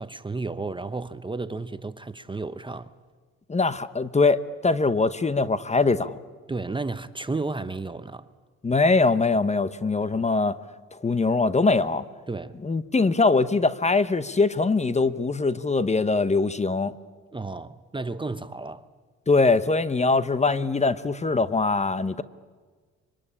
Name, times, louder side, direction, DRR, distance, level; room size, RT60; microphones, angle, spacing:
voice 1, 0.0-2.9 6.5-8.3 10.1-10.3 12.3-12.6 17.3-18.9, right 3 dB, 15° right, 0.8 m, -33 dB
voice 2, 3.5-6.2 8.6-10.6 10.9-12.1 12.6-16.9 19.3-22.2, left 3 dB, 20° left, 0.9 m, -22 dB
24.5 x 24.5 x 10.0 m
cardioid pair, 90°, 30 cm